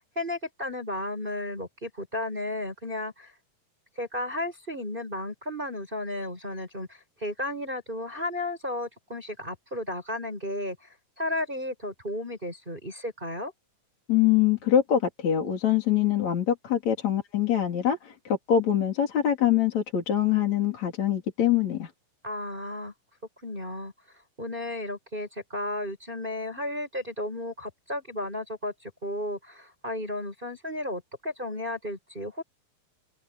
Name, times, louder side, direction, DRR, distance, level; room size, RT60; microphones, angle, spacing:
voice 1, 0.0-3.3 4.0-10.9 11.2-13.5 22.2-22.9 23.4-23.9 24.4-32.4, left 1 dB, 10° right, 7.4 m, -33 dB
voice 2, 14.1-21.9, left 10 dB, 50° left, 4.3 m, -24 dB
omnidirectional pair, 4.2 m